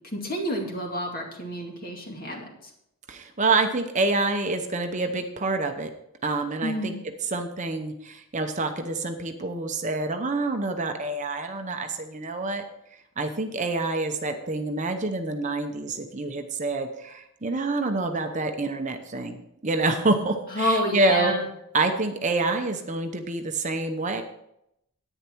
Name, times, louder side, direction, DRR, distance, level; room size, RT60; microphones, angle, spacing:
voice 1, 0.1-2.5 6.6-7.0 20.5-21.4, equal, 40° left, 1 dB, 2.3 m, -28 dB
voice 2, 3.1-5.9 6.2-6.9 7.3-12.6 13.2-21.3 21.7-24.2, right 3 dB, 35° right, 6 dB, 0.8 m, -27 dB
10.5 x 9.2 x 4.6 m, 0.79 s
head